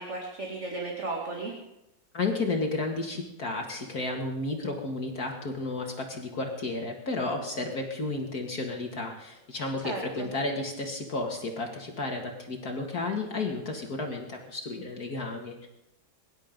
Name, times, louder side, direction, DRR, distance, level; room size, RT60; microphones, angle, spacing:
voice 1, 0.0-1.5 9.8-10.3, right 3 dB, 40° right, -1 dB, 2.6 m, -35 dB
voice 2, 2.1-15.7, left 3 dB, 55° left, 2 dB, 2.2 m, -32 dB
23.5 x 11.5 x 5.3 m, 0.91 s
omnidirectional pair, 1.9 m